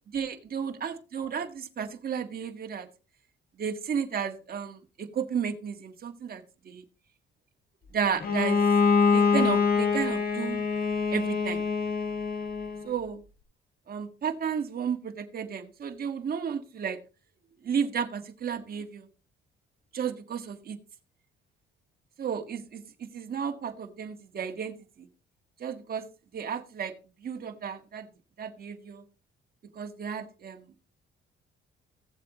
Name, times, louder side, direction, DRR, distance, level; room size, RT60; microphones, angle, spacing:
voice 1, 0.1-2.9 3.6-6.8 7.9-8.6 9.1-10.6 11.1-11.6 12.8-13.2 13.9-17.0 17.6-19.1 19.9-20.8 22.2-25.1 25.6-26.0 26.3-26.9 27.2-28.1 28.4-29.0 29.8-30.7, right 7 dB, 50° right, 5 dB, 1.7 m, -33 dB
Bowed string instrument, 8.2-12.9, left 5 dB, 50° left, 1.8 m, -25 dB
16.5 x 7.6 x 3.1 m, 0.33 s
cardioid pair, 90°, 20 cm